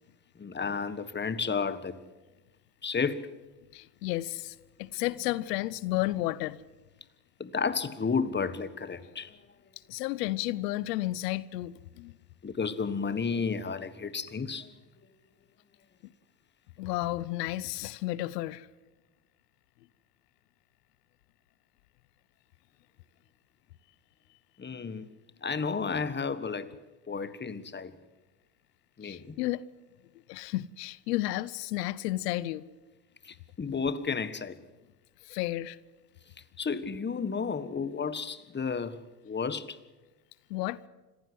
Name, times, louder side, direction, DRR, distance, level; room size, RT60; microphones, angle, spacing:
voice 1, 0.4-2.0 2.8-3.3 7.4-9.4 12.4-14.7 24.6-25.1 25.4-26.7 27.1-27.9 29.0-29.4 33.2-34.6 36.6-39.8, left 5 dB, 20° left, 1.6 m, -32 dB
voice 2, 3.7-6.6 9.9-12.1 16.8-18.7 29.0-29.7 30.3-32.6 35.2-35.8 40.5-40.8, left 16 dB, 90° left, 0.8 m, -32 dB
26.0 x 15.5 x 8.0 m
supercardioid pair, 80°, 47 cm